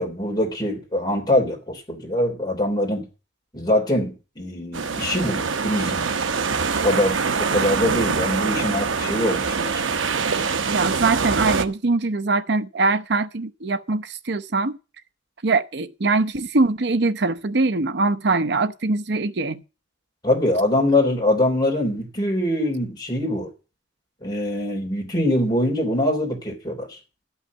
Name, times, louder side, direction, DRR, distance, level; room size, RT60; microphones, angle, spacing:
voice 1, 0.0-3.0 3.5-6.1 6.8-9.7 20.2-23.5 24.2-27.0, left 1 dB, 20° left, 3.4 m, -23 dB
sound 1, 4.7-11.7, right 5 dB, 85° right, 0.9 m, -24 dB
voice 2, 10.5-14.8 15.4-19.6, right 3 dB, 60° right, 0.8 m, -22 dB
12.0 x 5.8 x 8.4 m
head